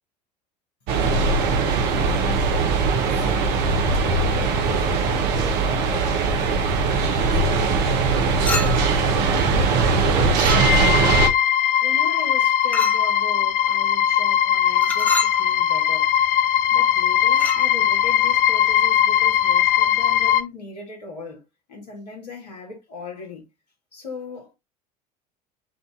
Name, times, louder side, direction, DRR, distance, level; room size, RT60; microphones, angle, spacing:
sound 1, 0.9-11.3, right 4 dB, 55° right, 1.0 m, -20 dB
voice 1, 2.8-4.1 4.3-11.3 11.8-16.2 16.7-23.5 23.9-24.5, left 3 dB, 80° left, 1.9 m, -38 dB
Chink clink, 8.4-9.0 10.3-11.0 12.7-13.1 14.8-15.4 17.3-17.7, left 1 dB, 10° left, 0.9 m, -29 dB
sound 2, 10.5-20.4, left 10 dB, 40° left, 0.5 m, -19 dB
6.3 x 2.7 x 2.9 m
figure-of-eight pair, 70°, 21 cm